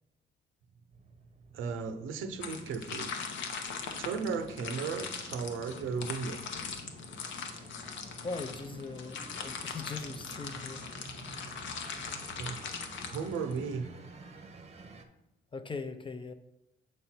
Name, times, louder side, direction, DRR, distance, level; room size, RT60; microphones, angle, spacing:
sound 1, 0.9-15.1, right 3 dB, 35° right, 0.8 m, -52 dB
voice 1, 1.5-3.1 4.0-6.5 12.4-12.6 13.0-13.9, right 5 dB, 85° right, 8 dB, 0.7 m, -35 dB
sound 2, 2.4-13.8, left 5 dB, 70° left, 0.9 m, -41 dB
voice 2, 8.2-10.8 15.5-16.3, left 4 dB, 25° left, 9 dB, 0.6 m, -40 dB
6.7 x 4.2 x 4.3 m, 0.87 s
cardioid pair, 90°, 20 cm